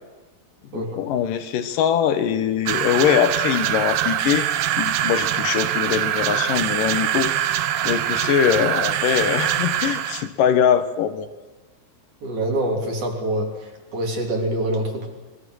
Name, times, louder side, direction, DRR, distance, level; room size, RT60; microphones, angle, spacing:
voice 1, 0.7-11.3, left 9 dB, 70° left, 10 dB, 2.2 m, -22 dB
sound 1, 2.7-10.3, right 11 dB, 75° right, 2.0 m, -23 dB
voice 2, 12.2-15.1, right 1 dB, 45° right, 1 dB, 4.2 m, -25 dB
27.0 x 22.0 x 6.3 m, 1.2 s
omnidirectional pair, 5.0 m